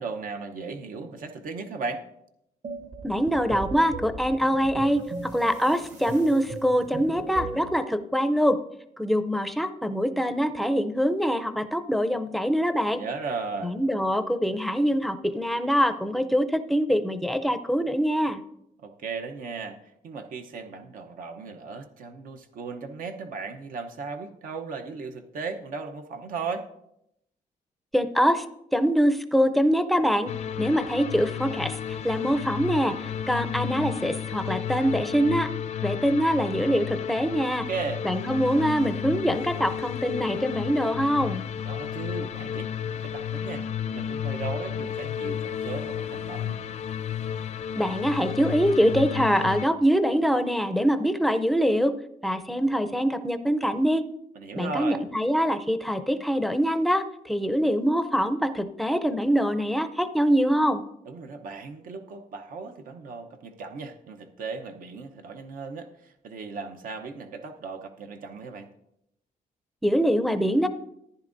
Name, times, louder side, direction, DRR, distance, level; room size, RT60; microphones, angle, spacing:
voice 1, 0.0-2.0 13.0-13.8 18.8-26.7 37.7-38.0 41.6-43.7 43.9-46.6 54.3-55.0 61.0-68.7, right 4 dB, 75° right, 5 dB, 0.8 m, -36 dB
sound 1, 2.6-7.8, right 3 dB, 55° right, 1.6 m, -37 dB
voice 2, 3.0-8.6 9.0-13.0 13.6-18.4 27.9-28.5 28.7-30.3 30.6-31.8 32.0-35.5 35.8-37.7 38.0-41.4 47.8-51.9 52.2-54.0 54.6-60.8 69.8-70.7, equal, ahead, 9 dB, 0.5 m, -24 dB
sound 2, 30.3-49.7, left 9 dB, 50° left, 0.5 m, -32 dB
14.5 x 10.5 x 2.6 m, 0.79 s
wide cardioid pair, 150°, 15 cm